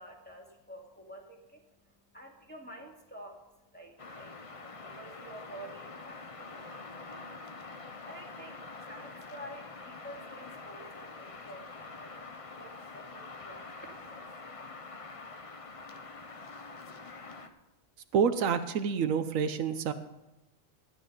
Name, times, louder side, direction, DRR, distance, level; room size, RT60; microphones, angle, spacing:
voice 1, 0.0-14.3, right 1 dB, 10° left, -2 dB, 2.3 m, -50 dB
sound 1, 4.0-17.5, left 3 dB, 30° left, 0.8 m, -46 dB
voice 2, 18.1-19.9, right 7 dB, 80° right, 10 dB, 1.2 m, -28 dB
13.5 x 9.9 x 5.3 m, 1.0 s
omnidirectional pair, 1.4 m